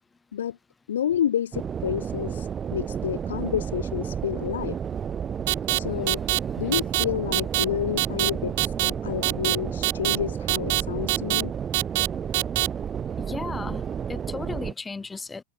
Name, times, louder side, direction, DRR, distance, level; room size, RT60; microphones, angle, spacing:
voice 1, 0.9-4.8 5.7-6.2 6.6-11.5, left 10 dB, 90° left, 0.7 m, -29 dB
sound 1, 1.5-14.7, right 7 dB, 25° right, 1.9 m, -31 dB
sound 2, 5.5-5.8 6.1-6.4 6.7-7.0 7.3-7.6 8.0-8.3 8.6-8.9 9.2-9.6 9.8-10.2 10.5-10.8 11.1-11.4 11.7-12.1 12.3-12.7, right 24 dB, 65° right, 1.4 m, -23 dB
voice 2, 5.8-6.7 13.2-15.4, left 4 dB, 15° left, 4.5 m, -37 dB
hypercardioid pair, 115°, 0 cm